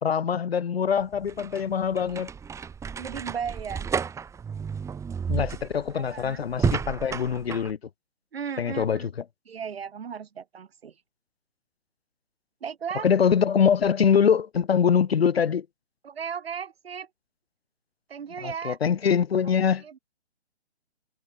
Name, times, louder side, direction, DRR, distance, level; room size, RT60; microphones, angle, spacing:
voice 1, 0.0-2.3 5.3-7.8 8.6-9.1 13.0-15.7 18.4-19.8, left 7 dB, 60° left, 3.0 m, -23 dB
sound 1, 1.0-7.7, right 6 dB, 10° right, 2.6 m, -32 dB
voice 2, 3.0-3.9 5.9-6.5 8.3-9.1 9.5-11.0 12.6-13.1 16.0-17.1 18.1-18.8 19.4-19.5 19.8-20.0, right 7 dB, 60° right, 7.8 m, -36 dB
figure-of-eight pair, 140°, 33 cm